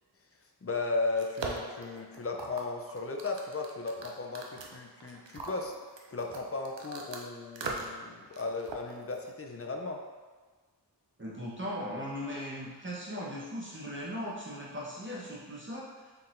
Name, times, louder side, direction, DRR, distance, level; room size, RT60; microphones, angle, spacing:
voice 1, 0.6-5.7 6.1-10.0, left 3 dB, 35° left, 2 dB, 0.5 m, -35 dB
sound 1, 1.1-7.2 7.6-8.0 8.3-9.3, right 3 dB, 90° right, 0.6 m, -41 dB
voice 2, 11.2-16.1, equal, 30° right, -6 dB, 0.9 m, -38 dB
4.6 x 3.7 x 2.5 m, 1.4 s
wide cardioid pair, 50°, 42 cm